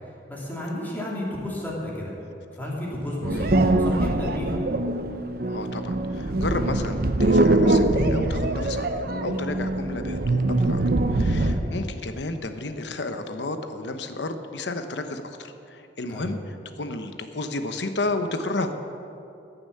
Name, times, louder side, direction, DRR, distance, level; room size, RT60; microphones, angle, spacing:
voice 1, 0.0-2.1 2.5-4.6 11.5-11.6 16.1-16.3, left 1 dB, 10° left, -5 dB, 2.9 m, -32 dB
sound 1, 3.2-11.7, right 2 dB, 55° right, 0.8 m, -23 dB
voice 2, 5.5-10.8 11.1-18.7, left 2 dB, 80° left, 8 dB, 0.9 m, -32 dB
15.0 x 7.0 x 8.5 m, 2.8 s
head